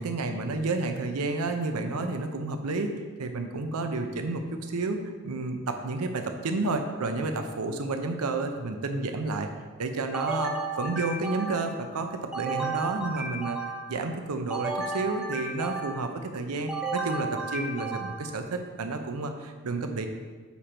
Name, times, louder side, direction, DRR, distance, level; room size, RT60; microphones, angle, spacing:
voice 1, 0.0-2.9 3.2-5.0 5.2-9.5 9.8-13.6 13.9-20.1, right 3 dB, 90° right, 6 dB, 0.6 m, -30 dB
sound 1, 10.1-11.8 12.3-14.0 14.5-16.1 16.7-18.4, right 3 dB, 5° right, 0.6 m, -33 dB
6.9 x 5.0 x 4.4 m, 1.5 s
head